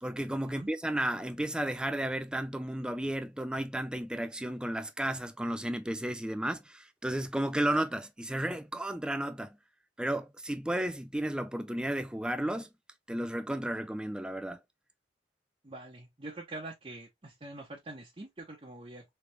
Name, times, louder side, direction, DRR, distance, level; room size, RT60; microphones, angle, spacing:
voice 1, 0.0-9.6 10.0-12.7 13.1-14.6, right 1 dB, 5° right, 0.3 m, -33 dB
voice 2, 15.6-19.0, right 2 dB, 30° right, 0.8 m, -44 dB
3.4 x 3.3 x 3.0 m
head